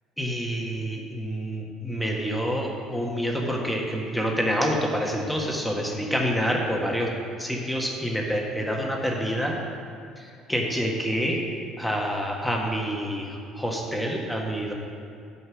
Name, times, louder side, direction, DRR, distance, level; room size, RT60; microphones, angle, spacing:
voice 1, 0.2-7.1 7.4-9.6 10.2-11.4 11.8-14.7, equal, 5° left, -1 dB, 1.5 m, -27 dB
9.4 x 5.4 x 6.2 m, 2.4 s
hypercardioid pair, 70°, 0 cm